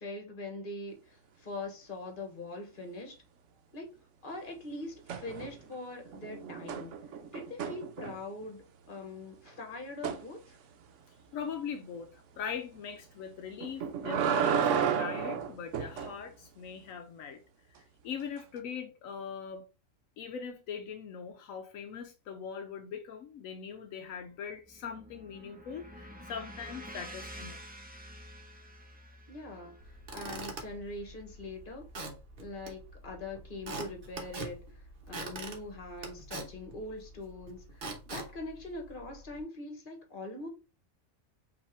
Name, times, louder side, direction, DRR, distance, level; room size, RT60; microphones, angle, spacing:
voice 1, 0.0-3.2 3.7-3.9 4.2-6.9 7.3-10.6 29.3-31.8 32.4-34.6 35.1-40.5, left 2 dB, 40° left, 1.4 m, -42 dB
sound 1, 5.1-5.7 6.1-8.4 10.0-10.2 13.6-16.1 18.4-18.5, right 7 dB, 65° right, 1.0 m, -32 dB
voice 2, 11.3-17.4 18.0-19.6 20.2-27.6, left 7 dB, 80° left, 1.0 m, -41 dB
sound 2, 24.2-32.5, equal, 10° right, 0.5 m, -49 dB
Squeak / Wood, 29.8-39.4, right 2 dB, 45° right, 1.1 m, -44 dB
5.4 x 3.0 x 3.2 m
omnidirectional pair, 1.4 m